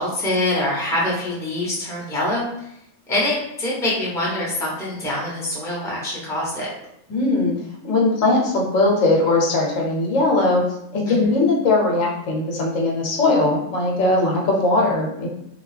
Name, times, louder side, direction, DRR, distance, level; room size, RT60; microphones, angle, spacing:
voice 1, 0.0-2.5 3.1-6.7 11.1-11.3, left 1 dB, 5° left, -6 dB, 0.7 m, -24 dB
voice 2, 7.1-7.5 7.8-10.6 10.9-15.3, left 2 dB, 75° left, -1 dB, 1.1 m, -19 dB
2.7 x 2.3 x 3.2 m, 0.77 s
omnidirectional pair, 1.4 m